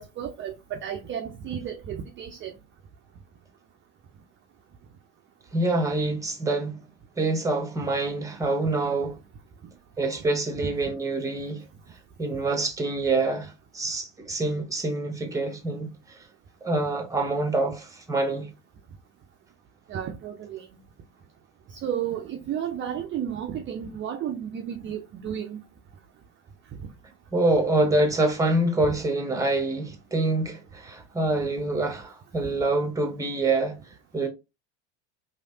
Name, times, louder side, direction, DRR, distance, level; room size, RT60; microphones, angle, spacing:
voice 1, 0.0-2.5 10.6-10.9 19.9-20.7 21.7-25.6, right 9 dB, 35° right, 0.5 m, -33 dB
voice 2, 5.5-6.8 7.2-9.2 10.0-11.6 12.2-16.2 16.6-18.5 27.3-33.8 34.1-34.3, right 2 dB, 10° right, 1.0 m, -26 dB
3.1 x 2.6 x 2.7 m
hypercardioid pair, 80°, 35 cm